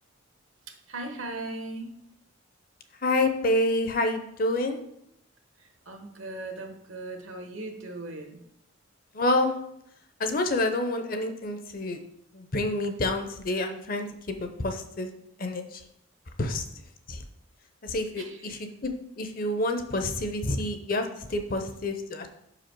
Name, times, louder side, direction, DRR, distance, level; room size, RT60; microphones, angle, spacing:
voice 1, 0.7-1.9 5.6-8.4 18.2-18.6, right 2 dB, 70° right, 4 dB, 1.1 m, -38 dB
voice 2, 3.0-4.8 9.1-9.5 10.2-12.0 12.3-15.1 15.4-15.8 16.4-16.6 17.1-17.2 17.8-22.3, left 2 dB, 45° left, 6 dB, 0.6 m, -28 dB
5.5 x 4.9 x 4.5 m, 0.75 s
head